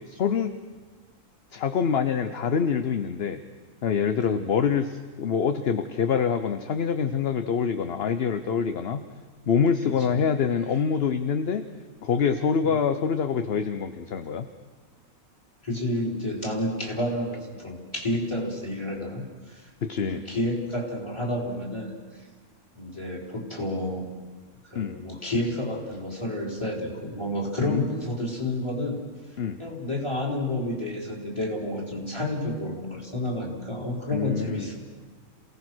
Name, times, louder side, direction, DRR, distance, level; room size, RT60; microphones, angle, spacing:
voice 1, 0.1-0.5 1.5-3.4 3.8-9.1 9.5-11.6 12.0-14.5 19.8-20.2 24.7-25.0 27.6-27.9 29.4-29.6 34.1-34.7, left 6 dB, 50° left, 9 dB, 0.9 m, -25 dB
voice 2, 9.8-10.2 12.7-12.8 15.6-19.7 20.0-21.9 22.8-24.1 24.6-29.0 29.6-34.8, left 1 dB, 20° left, -1 dB, 4.2 m, -30 dB
27.5 x 17.0 x 6.2 m, 1.5 s
omnidirectional pair, 1.5 m